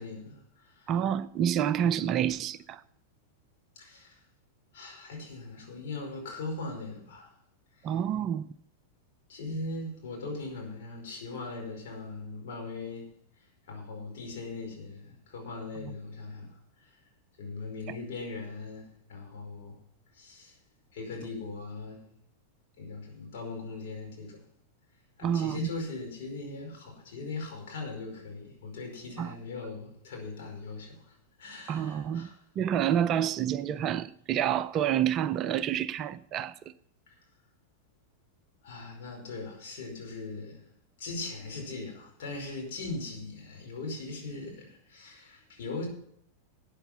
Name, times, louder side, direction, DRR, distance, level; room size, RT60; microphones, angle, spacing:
voice 1, 0.0-0.9 3.7-4.2 4.7-7.3 7.7-7.9 9.3-13.1 13.4-17.0 17.4-19.8 20.1-20.6 20.9-22.1 22.8-24.5 25.2-32.4 37.1-37.2 38.6-40.7 41.0-45.9, left 3 dB, 55° left, 5.0 m, -40 dB
voice 2, 0.9-2.8 7.8-8.4 25.2-25.7 29.2-29.3 31.7-32.3 32.6-36.5, right 9 dB, 35° right, 0.5 m, -28 dB
13.5 x 9.1 x 5.7 m
figure-of-eight pair, 90°, 0 cm